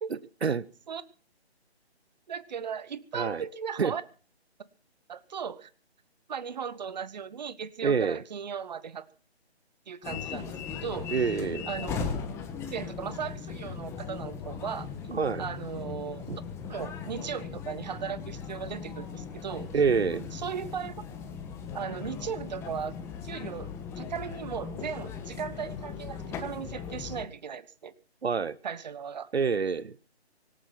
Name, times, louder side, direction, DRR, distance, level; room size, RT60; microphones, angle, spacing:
voice 1, 2.3-4.0 5.1-5.7 6.3-9.1 9.9-11.1 11.6-12.1 12.7-14.9 15.4-16.3 16.7-19.7 20.3-20.9 21.7-23.0 23.2-27.9 28.6-29.3, right 7 dB, 40° right, 17 dB, 1.1 m, -37 dB
voice 2, 3.1-3.4 3.8-3.9 7.8-8.2 11.1-11.7 15.1-15.4 16.3-16.4 19.7-20.3 28.2-28.6 29.3-30.0, right 5 dB, 70° right, 18 dB, 0.9 m, -26 dB
sound 1, 10.0-27.2, left 6 dB, 10° left, 1.3 m, -38 dB
24.5 x 8.8 x 5.7 m, 0.40 s
figure-of-eight pair, 150°, 33 cm